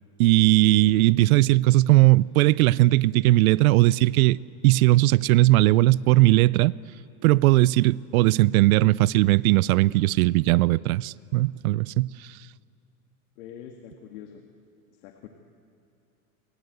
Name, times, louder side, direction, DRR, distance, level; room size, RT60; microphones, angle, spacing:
voice 1, 0.2-6.7 7.2-12.3, right 18 dB, 70° right, 0.6 m, -19 dB
voice 2, 13.4-14.4 14.9-15.3, left 9 dB, 70° left, 2.2 m, -44 dB
30.0 x 23.5 x 8.1 m
supercardioid pair, 140°, 44 cm